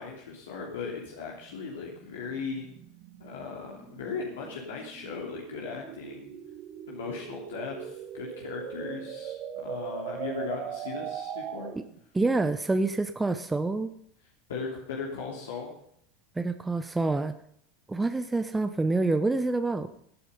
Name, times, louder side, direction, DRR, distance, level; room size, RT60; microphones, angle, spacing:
voice 1, 0.0-2.7 3.2-6.3 6.9-11.7 14.5-15.8, left 5 dB, 75° left, -2 dB, 3.0 m, -37 dB
sound 1, 0.7-12.0, right 9 dB, 50° right, 1.8 m, -40 dB
voice 2, 12.1-13.9 16.4-17.3 17.9-19.9, right 3 dB, 15° right, 10 dB, 0.9 m, -27 dB
16.0 x 9.1 x 5.4 m, 0.71 s
hypercardioid pair, 85°, 0 cm